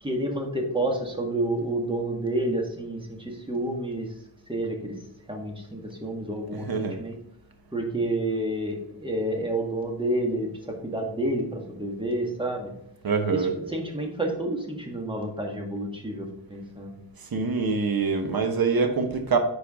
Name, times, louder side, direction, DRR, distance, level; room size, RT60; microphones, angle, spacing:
voice 1, 0.0-4.1 4.5-5.0 5.3-7.2 7.7-12.7 13.3-17.0, right 1 dB, 10° right, 1 dB, 1.7 m, -29 dB
voice 2, 6.5-7.0 13.0-13.6 17.3-19.4, right 4 dB, 55° right, 6 dB, 1.2 m, -25 dB
9.6 x 4.7 x 3.6 m, 0.81 s
wide cardioid pair, 105°, 44 cm